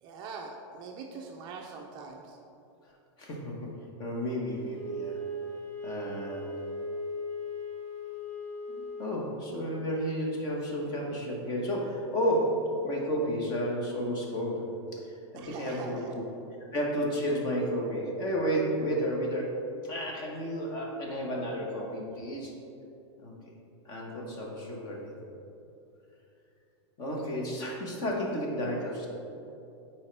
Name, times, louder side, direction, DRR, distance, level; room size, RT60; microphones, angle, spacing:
voice 1, 0.0-2.4 15.3-16.2, right 4 dB, 30° right, 1 dB, 0.5 m, -42 dB
voice 2, 3.2-3.7 4.0-5.2 5.8-6.5 8.7-16.3 16.7-22.5 23.2-23.5 23.8-25.1 27.0-29.1, equal, 30° left, -1 dB, 1.1 m, -32 dB
Wind instrument woodwind instrument, 4.7-9.2, left 1 dB, 10° left, 0.8 m, -38 dB
9.0 x 4.4 x 3.3 m, 2.8 s
supercardioid pair, 155°, 15 cm